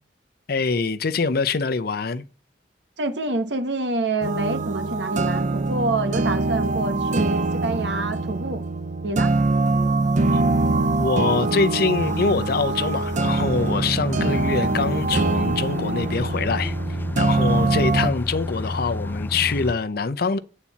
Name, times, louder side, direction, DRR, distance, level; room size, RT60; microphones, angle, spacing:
voice 1, 0.5-2.2 10.3-10.5 11.0-20.4, left 4 dB, 60° left, 0.7 m, -24 dB
voice 2, 3.0-8.6 9.0-9.3, right 2 dB, 80° right, 1.2 m, -27 dB
sound 1, 4.2-18.1, right 3 dB, 45° right, 0.6 m, -23 dB
sound 2, 12.0-19.7, left 2 dB, 10° left, 0.3 m, -31 dB
8.9 x 4.2 x 7.2 m
head